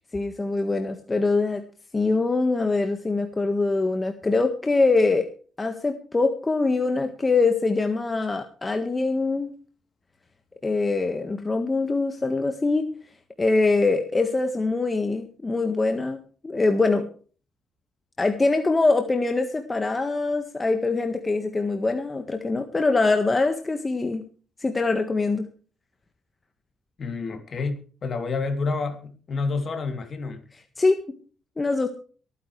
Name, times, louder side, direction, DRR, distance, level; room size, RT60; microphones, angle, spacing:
voice 1, 0.1-1.6 1.9-5.3 5.6-9.5 10.6-12.9 13.4-17.1 18.2-24.2 24.6-25.5 30.8-31.0 31.6-31.9, left 3 dB, 25° left, 1.5 m, -23 dB
voice 2, 27.0-30.4, left 4 dB, 45° left, 3.1 m, -29 dB
23.5 x 9.6 x 3.3 m
cardioid pair, 90°, 0 cm